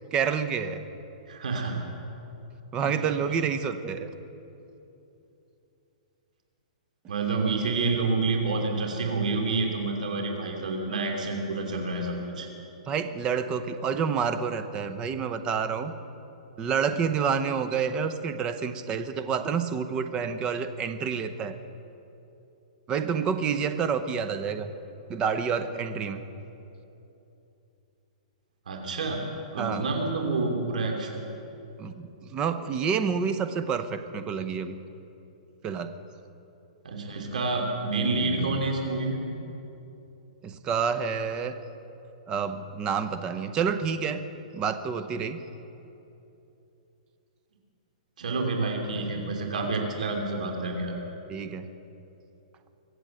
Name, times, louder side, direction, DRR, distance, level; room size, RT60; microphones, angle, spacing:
voice 1, 0.1-0.9 2.7-4.1 12.9-15.9 16.6-21.6 22.9-24.7 25.1-26.2 29.6-29.8 31.8-34.7 35.6-35.9 40.4-41.5 42.3-44.2 44.5-45.4 49.5-49.7 51.3-51.7, right 6 dB, 20° right, 11 dB, 0.7 m, -28 dB
voice 2, 1.3-1.7 2.8-2.9 7.1-12.5 28.7-29.2 29.5-31.2 36.8-39.2 48.2-51.0, right 3 dB, 80° right, 2 dB, 2.8 m, -28 dB
23.5 x 7.9 x 7.7 m, 2.9 s
hypercardioid pair, 155°, 4 cm